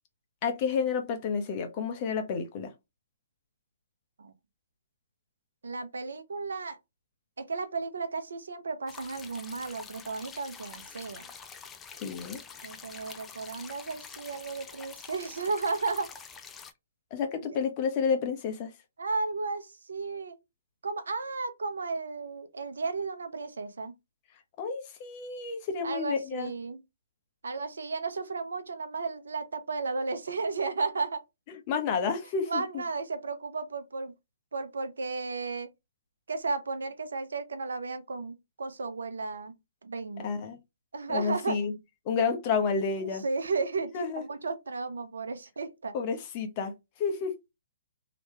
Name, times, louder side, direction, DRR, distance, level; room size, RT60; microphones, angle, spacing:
voice 1, 0.4-2.7 12.0-12.4 17.1-18.7 24.6-26.5 31.5-32.8 40.2-40.6 41.1-41.7 42.0-43.2 43.9-44.2 45.9-46.7 47.0-47.3, left 5 dB, 40° left, 1.1 m, -30 dB
voice 2, 5.6-6.8 7.4-11.3 12.6-16.1 19.0-20.4 20.8-23.9 25.8-26.8 27.4-31.2 32.4-34.1 34.5-35.7 36.3-39.5 39.8-40.3 40.9-41.6 43.0-45.9, right 4 dB, 80° right, 0.8 m, -34 dB
sound 1, 8.9-16.7, left 6 dB, 15° left, 0.5 m, -47 dB
3.2 x 3.0 x 3.1 m
hypercardioid pair, 130°, 0 cm